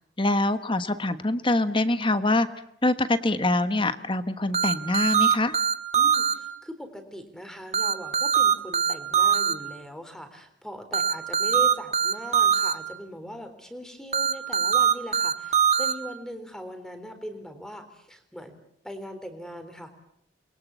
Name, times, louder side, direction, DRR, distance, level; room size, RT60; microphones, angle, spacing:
voice 1, 0.2-2.5 2.8-5.6, left 2 dB, 25° left, 11 dB, 1.2 m, -24 dB
sound 1, 4.5-6.3 7.7-9.5 10.9-12.7 14.1-15.9, right 7 dB, 35° right, 1.6 m, -22 dB
voice 2, 6.0-18.6 18.8-19.9, equal, 5° left, 8 dB, 3.6 m, -40 dB
28.5 x 22.0 x 8.3 m, 0.76 s
head